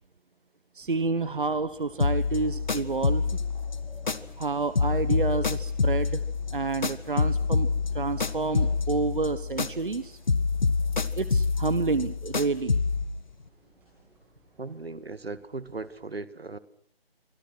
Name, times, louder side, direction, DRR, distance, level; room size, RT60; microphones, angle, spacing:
voice 1, 0.7-3.2 4.4-6.2 6.5-7.7 7.9-10.2 11.1-12.7, right 4 dB, 55° right, 14 dB, 1.4 m, -29 dB
sound 1, 0.8-16.1, equal, 5° right, 7.0 m, -55 dB
sound 2, 2.0-4.5 4.7-10.0 10.3-13.1, left 4 dB, 45° left, 1.5 m, -27 dB
voice 2, 14.6-16.6, right 3 dB, 75° right, 15 dB, 2.1 m, -37 dB
27.0 x 25.0 x 6.3 m, 0.64 s
figure-of-eight pair, 170°, 31 cm